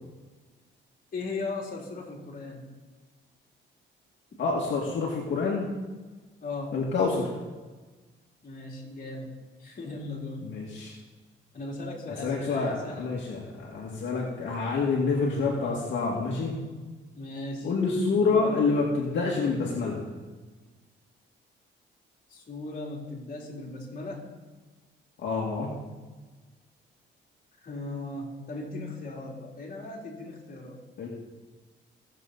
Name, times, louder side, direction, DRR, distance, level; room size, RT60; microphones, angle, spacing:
voice 1, 1.1-2.6 6.4-6.8 8.4-9.3 9.6-10.4 11.5-13.2 17.1-17.7 18.2-18.4 22.3-24.3 27.6-30.8, left 2 dB, 45° left, -2 dB, 3.3 m, -37 dB
voice 2, 4.4-5.7 6.7-7.3 10.4-11.0 12.1-16.6 17.6-20.0 25.2-25.7 31.0-31.1, left 4 dB, 65° left, -3 dB, 2.1 m, -27 dB
17.0 x 7.4 x 4.1 m, 1.3 s
cardioid pair, 90°, 20 cm